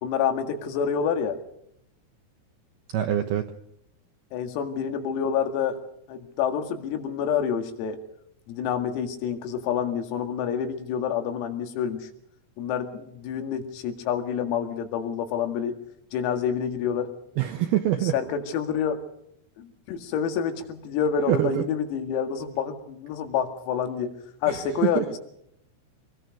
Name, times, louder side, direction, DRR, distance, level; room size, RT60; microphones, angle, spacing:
voice 1, 0.0-1.4 4.3-5.8 6.1-8.0 8.5-12.1 12.6-15.8 16.1-17.1 18.1-19.0 19.6-24.1 24.4-25.2, left 7 dB, 90° left, 6 dB, 4.8 m, -28 dB
voice 2, 2.9-3.5 17.4-18.2 21.3-21.6 24.5-25.1, right 12 dB, 75° right, 6 dB, 2.3 m, -25 dB
26.0 x 20.5 x 5.2 m, 0.74 s
omnidirectional pair, 6.0 m